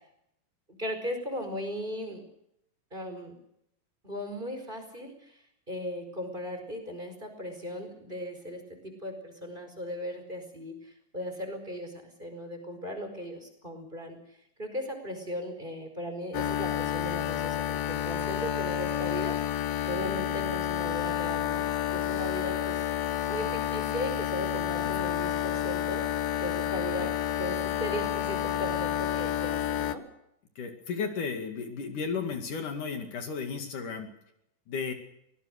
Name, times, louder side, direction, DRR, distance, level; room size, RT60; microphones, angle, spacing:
voice 1, 0.8-2.2 2.9-3.3 4.0-5.4 5.7-14.2 14.6-21.6 21.9-22.8 23.3-26.0 26.4-30.0, equal, 15° right, 6 dB, 4.8 m, -37 dB
sound 1, 16.3-30.0, left 11 dB, 85° left, 3.0 m, -30 dB
voice 2, 30.6-34.1 34.7-34.9, left 5 dB, 65° left, 6 dB, 3.7 m, -34 dB
24.5 x 19.5 x 6.6 m, 0.77 s
omnidirectional pair, 4.0 m